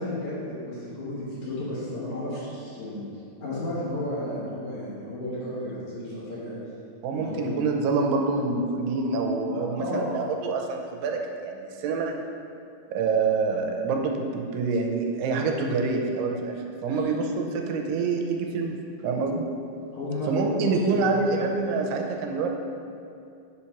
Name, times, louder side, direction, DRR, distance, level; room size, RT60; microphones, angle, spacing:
voice 1, 0.0-3.1 3.4-6.6 7.1-7.6 9.5-10.1 16.9-17.0 19.9-21.2, left 1 dB, 60° left, -8 dB, 2.2 m, -33 dB
voice 2, 7.0-12.1 12.9-18.7 19.0-19.4 20.3-22.5, right 4 dB, 85° right, 2 dB, 2.7 m, -26 dB
6.8 x 4.3 x 5.8 m, 2.5 s
omnidirectional pair, 4.5 m